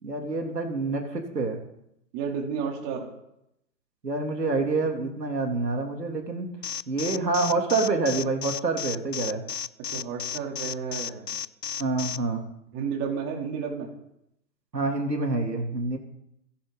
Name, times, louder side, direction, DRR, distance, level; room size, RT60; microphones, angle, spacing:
voice 1, 0.0-1.6 4.0-6.5 6.9-9.4 11.8-12.4 14.7-16.0, right 3 dB, 80° right, 2 dB, 3.6 m, -27 dB
voice 2, 2.1-3.1 9.9-11.3 12.7-13.9, right 6 dB, 30° right, 1 dB, 3.7 m, -31 dB
Alarm, 6.6-12.2, left 8 dB, 80° left, 0.9 m, -33 dB
29.5 x 11.5 x 4.2 m, 0.80 s
figure-of-eight pair, 115°, 49 cm